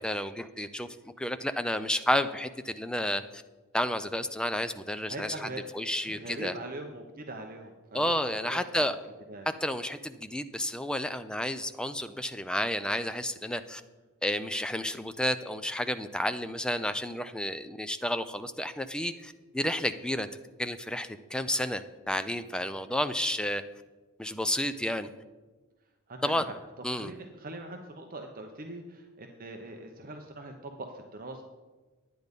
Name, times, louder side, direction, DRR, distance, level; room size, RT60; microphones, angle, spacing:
voice 1, 0.0-3.4 3.7-5.5 5.7-6.5 7.9-9.0 9.6-13.8 14.2-20.3 20.6-23.6 24.2-25.1 26.2-26.5 26.8-27.1, left 1 dB, 5° left, 10 dB, 0.4 m, -31 dB
voice 2, 5.0-5.6 5.9-8.1 8.4-8.9 9.3-9.5 26.1-26.5 26.9-31.4, right 2 dB, 40° right, 3 dB, 0.8 m, -42 dB
10.5 x 9.4 x 5.2 m, 1.3 s
head